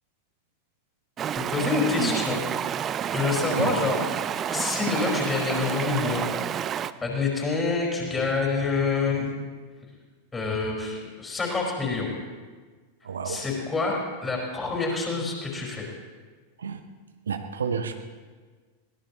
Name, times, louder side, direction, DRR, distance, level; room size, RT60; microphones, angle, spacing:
Stream, 1.2-6.9, right 9 dB, 25° right, 0.4 m, -29 dB
voice 1, 1.4-2.4 3.1-4.1 4.5-6.3 7.0-9.3 10.3-12.1 13.2-15.9, left 4 dB, 15° left, -1 dB, 4.6 m, -27 dB
voice 2, 13.0-13.4 16.6-16.8 17.3-17.9, right 6 dB, 70° right, 7 dB, 0.9 m, -30 dB
22.0 x 18.0 x 3.0 m, 1.4 s
figure-of-eight pair, 90°, 0 cm